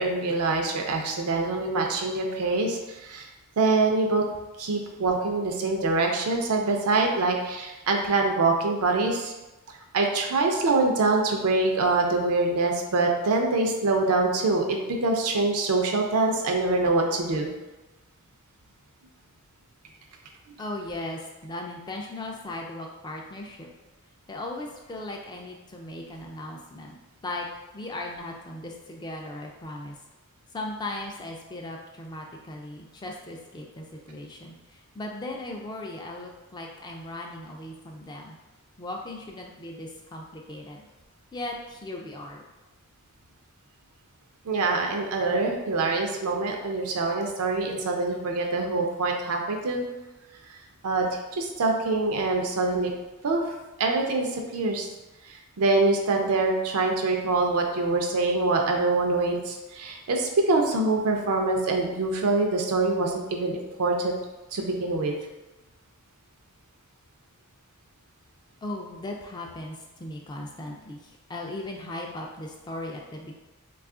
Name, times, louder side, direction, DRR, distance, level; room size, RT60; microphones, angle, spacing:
voice 1, 0.0-3.3 3.6-4.2 4.6-9.3 9.7-17.5 20.5-20.6 44.4-49.8 50.5-50.6 50.8-52.9 53.2-53.4 53.8-54.9 55.2-64.1 64.5-65.2, right 3 dB, 80° right, 2 dB, 0.5 m, -25 dB
voice 2, 20.6-23.7 24.3-27.0 27.2-27.5 27.7-30.0 30.5-38.4 38.8-40.9 41.3-42.5 68.6-73.3, left 2 dB, 20° left, 0 dB, 0.3 m, -37 dB
2.7 x 2.4 x 3.6 m, 1.1 s
head